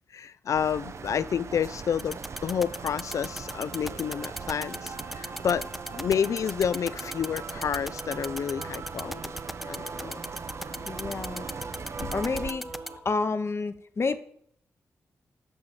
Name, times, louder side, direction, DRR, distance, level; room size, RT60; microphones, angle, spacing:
voice 1, 0.1-9.3 9.6-10.2, left 7 dB, 65° left, 18 dB, 0.4 m, -30 dB
sound 1, 0.5-12.5, right 5 dB, 55° right, 0.5 m, -41 dB
sound 2, 2.0-12.9, equal, ahead, 0.5 m, -36 dB
sound 3, 2.0-13.0, right 4 dB, 70° right, 2.0 m, -43 dB
voice 2, 10.7-11.5 12.0-12.7 13.0-14.2, left 4 dB, 50° left, 10 dB, 0.8 m, -29 dB
6.4 x 5.8 x 6.6 m, 0.64 s
supercardioid pair, 40°, 6 cm